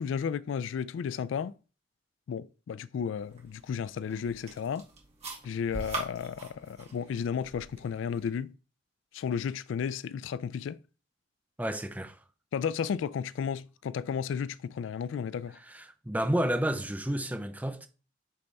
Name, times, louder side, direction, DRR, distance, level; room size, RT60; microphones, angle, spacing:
voice 1, 0.0-1.5 2.3-4.9 5.4-8.5 9.1-10.8 12.5-15.6, left 7 dB, 80° left, 0.3 m, -33 dB
sound 1, 3.2-8.3, right 3 dB, 35° right, 1.8 m, -43 dB
voice 2, 11.6-12.2 15.6-17.9, right 1 dB, 10° right, 0.6 m, -31 dB
8.4 x 3.4 x 4.0 m
head